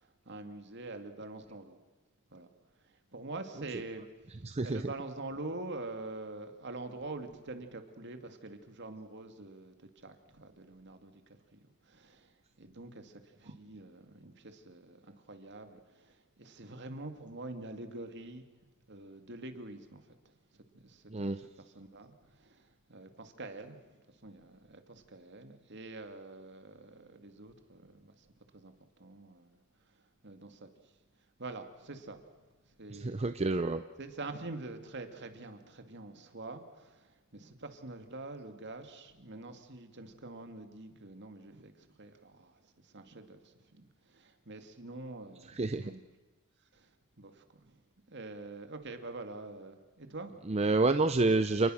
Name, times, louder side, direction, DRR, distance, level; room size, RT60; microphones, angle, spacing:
voice 1, 0.0-1.8 2.3-2.5 2.8-18.5 18.9-20.2 20.5-28.3 28.5-29.6 29.9-30.9 31.4-32.2 32.7-33.4 34.0-46.1 46.7-46.9 47.2-47.8 48.1-50.3, right 2 dB, 55° right, 7 dB, 2.4 m, -46 dB
voice 2, 4.5-4.8 21.1-21.4 33.0-33.8 45.6-45.8 50.5-51.7, right 3 dB, 30° right, 9 dB, 0.6 m, -28 dB
28.5 x 20.0 x 6.4 m, 1.3 s
head